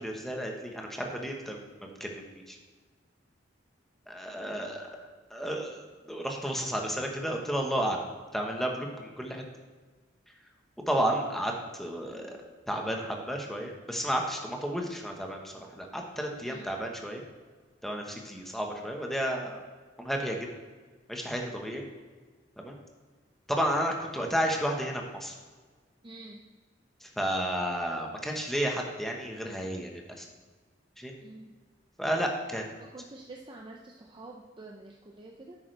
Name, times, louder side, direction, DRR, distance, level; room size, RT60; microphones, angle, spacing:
voice 1, 0.0-1.6 2.0-2.6 4.1-5.0 5.3-8.0 8.3-9.4 10.9-11.5 11.8-12.4 12.7-17.2 17.8-19.6 20.0-20.5 21.1-21.8 22.6-22.7 23.5-25.3 27.0-30.3 31.0-31.1 32.0-32.6, equal, ahead, 1 dB, 1.2 m, -32 dB
voice 2, 26.0-26.4 31.2-31.5 32.8-35.6, right 2 dB, 25° right, 0 dB, 0.6 m, -47 dB
10.5 x 8.6 x 3.3 m, 1.4 s
head